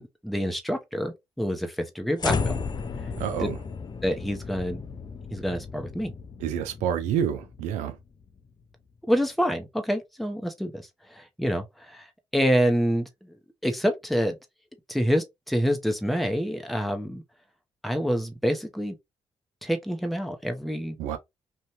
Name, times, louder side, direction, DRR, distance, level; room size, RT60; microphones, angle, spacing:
voice 1, 0.0-2.6 3.4-3.5 4.0-4.8 5.3-6.1 9.1-12.1 12.3-13.4 13.6-14.4 14.9-17.2 17.8-19.0 19.6-21.0, equal, ahead, 0.7 m, -27 dB
sound 1, 2.2-8.5, left 5 dB, 35° left, 0.4 m, -34 dB
voice 2, 3.2-3.6 6.4-8.0 21.0-21.2, right 9 dB, 85° right, 0.4 m, -28 dB
2.6 x 2.2 x 2.9 m
supercardioid pair, 55°, 12 cm